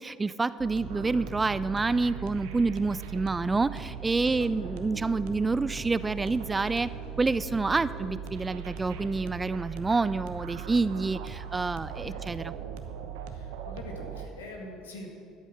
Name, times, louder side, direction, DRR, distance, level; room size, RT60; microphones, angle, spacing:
voice 1, 0.0-6.9 7.2-12.5, right 3 dB, 20° right, 16 dB, 0.3 m, -28 dB
sound 1, 0.6-14.3, right 8 dB, 70° right, 0.8 m, -39 dB
sound 2, 1.0-9.5, left 4 dB, 20° left, 2.6 m, -50 dB
voice 2, 4.3-4.8 11.9-12.2 13.3-15.1, left 2 dB, 80° left, 1 dB, 1.8 m, -45 dB
12.0 x 8.2 x 6.0 m, 2.4 s
hypercardioid pair, 60°, 0 cm